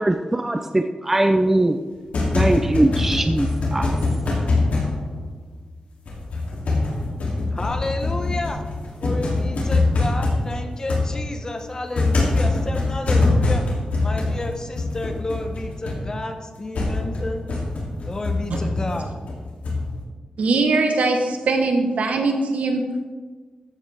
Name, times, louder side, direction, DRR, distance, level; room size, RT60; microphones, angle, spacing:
voice 1, 0.0-1.8 2.3-4.0, right 1 dB, 15° right, 7 dB, 0.4 m, -21 dB
sound 1, 1.9-5.7 6.1-20.0, left 2 dB, 85° left, 2.8 m, -24 dB
voice 2, 7.5-8.6 9.0-13.7 14.0-17.5 18.0-19.1, left 2 dB, 30° left, 5 dB, 1.0 m, -31 dB
voice 3, 20.4-23.0, right 3 dB, 85° right, 4 dB, 1.3 m, -21 dB
13.5 x 8.4 x 3.5 m, 1.4 s
wide cardioid pair, 145°, 2 cm